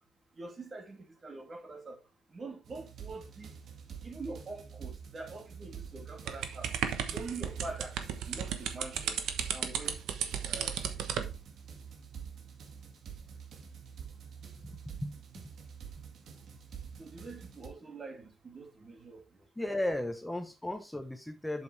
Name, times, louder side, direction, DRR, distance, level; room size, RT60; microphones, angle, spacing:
voice 1, 0.4-2.0 2.3-3.5 4.0-6.7 7.1-7.9 8.3-9.2 9.5-10.0 10.4-10.9 11.1-11.3 17.0-19.2 19.6-19.7, right 3 dB, 35° right, 2.6 m, -44 dB
sound 1, 2.6-17.7, right 7 dB, 65° right, 2.0 m, -47 dB
sound 2, 6.3-11.3, right 8 dB, 85° right, 1.1 m, -34 dB
voice 2, 14.6-15.2 19.6-21.6, left 1 dB, 5° left, 0.9 m, -35 dB
7.9 x 6.9 x 3.3 m
cardioid pair, 90°, 0 cm